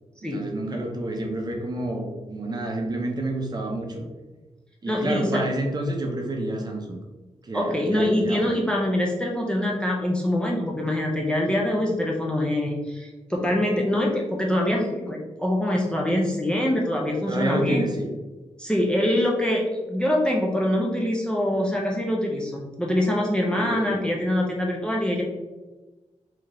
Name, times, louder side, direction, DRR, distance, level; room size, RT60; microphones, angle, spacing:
voice 1, 0.2-4.0 4.8-7.0 7.4-8.6 17.3-18.1 23.6-24.0, right 1 dB, 35° right, 1 dB, 0.6 m, -29 dB
voice 2, 4.9-5.4 7.5-17.8 18.6-25.2, left 1 dB, 5° left, -1 dB, 0.4 m, -24 dB
3.4 x 2.8 x 3.6 m, 1.2 s
wide cardioid pair, 160°, 13 cm